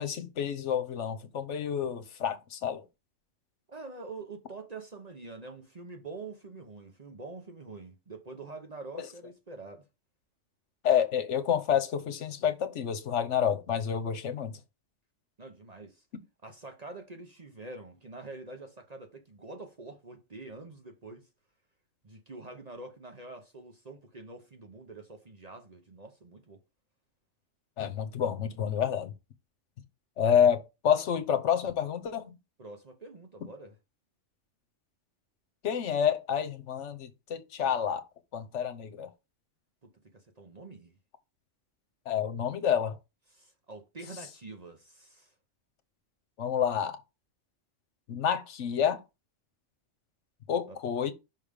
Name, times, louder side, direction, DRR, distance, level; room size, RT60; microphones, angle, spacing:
voice 1, 0.0-2.8 9.0-9.1 10.8-14.5 27.8-29.1 30.2-32.3 35.6-38.0 38.3-39.1 42.1-43.0 46.4-47.0 48.1-49.0 50.5-51.1, left 8 dB, 75° left, 1.2 m, -28 dB
voice 2, 3.7-9.8 15.4-16.0 16.4-21.3 22.0-26.6 32.6-33.7 39.8-41.0 43.3-45.3 50.7-50.8, right 3 dB, 35° right, 0.9 m, -46 dB
5.6 x 3.5 x 5.1 m
omnidirectional pair, 1.2 m